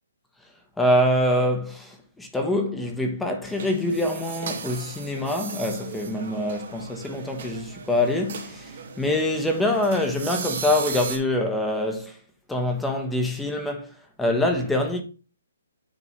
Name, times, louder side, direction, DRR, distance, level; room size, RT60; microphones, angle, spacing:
voice 1, 0.8-8.7 9.0-12.2 12.5-13.9 14.2-15.0, left 1 dB, 5° left, 1.0 m, -25 dB
sound 1, 3.5-11.2, right 6 dB, 50° right, 2.1 m, -36 dB
9.4 x 3.7 x 4.0 m
hypercardioid pair, 155°, 0 cm